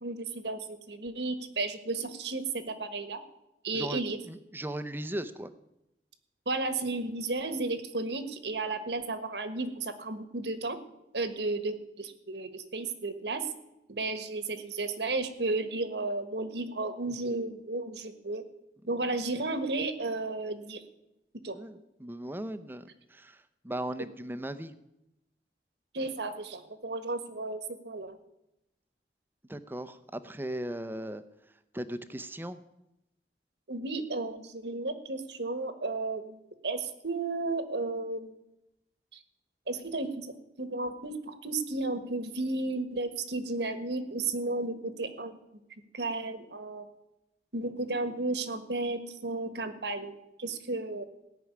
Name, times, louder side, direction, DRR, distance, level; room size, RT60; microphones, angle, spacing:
voice 1, 0.0-3.2 3.6-4.2 6.4-10.8 11.1-13.5 13.9-18.4 18.9-20.8 21.4-21.6 25.9-28.2 33.7-36.4 36.6-38.3 39.1-39.2 39.7-45.3 45.9-46.8 47.5-50.1 50.4-51.0, right 3 dB, 75° right, 10 dB, 1.4 m, -33 dB
voice 2, 3.7-5.5 21.5-24.7 29.5-31.2 31.7-32.6, right 1 dB, 10° right, 11 dB, 0.7 m, -38 dB
17.0 x 6.2 x 9.6 m, 0.89 s
head